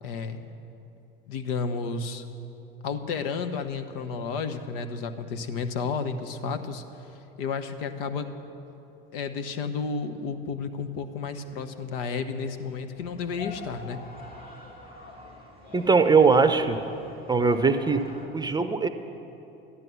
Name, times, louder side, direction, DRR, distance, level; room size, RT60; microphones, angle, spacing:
voice 1, 0.0-0.4 1.3-2.3 2.8-6.8 7.4-8.3 9.1-14.0, left 5 dB, 70° left, 9 dB, 0.9 m, -32 dB
sound 1, 12.9-18.3, left 3 dB, 30° left, 2.7 m, -44 dB
voice 2, 15.7-16.8 17.3-18.0 18.3-18.9, right 4 dB, 15° right, 10 dB, 0.7 m, -20 dB
12.5 x 10.5 x 6.9 m, 2.9 s
hypercardioid pair, 75°, 30 cm